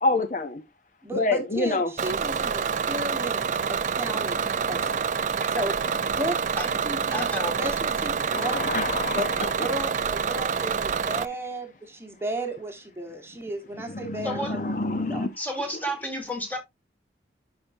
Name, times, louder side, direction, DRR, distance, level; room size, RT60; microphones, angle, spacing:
voice 1, 0.0-0.6 1.2-1.9 4.8-4.9 8.3-9.5 14.0-15.3, left 2 dB, 45° left, 0.7 m, -27 dB
voice 2, 1.0-5.1 5.5-5.8 6.1-6.4 6.8-7.3 7.6-8.7 9.1-15.3, right 1 dB, 15° right, 1.3 m, -34 dB
Bus / Engine, 2.0-11.3, right 6 dB, 45° right, 0.3 m, -27 dB
voice 3, 5.4-5.7 6.6-6.7 7.1-7.5 14.2-14.5 15.4-16.6, equal, 10° left, 1.9 m, -31 dB
10.5 x 5.1 x 2.6 m
head